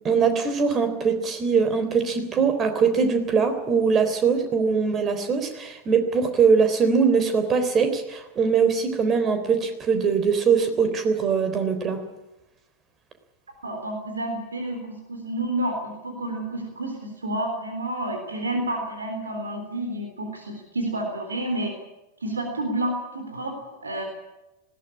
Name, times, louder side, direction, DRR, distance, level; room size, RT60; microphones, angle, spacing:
voice 1, 0.0-12.0, right 5 dB, 25° right, 8 dB, 3.7 m, -22 dB
voice 2, 13.6-14.8 15.1-21.7 22.2-24.0, right 1 dB, 75° right, 4 dB, 3.7 m, -30 dB
20.0 x 17.0 x 9.9 m, 1.0 s
figure-of-eight pair, 90°, 0 cm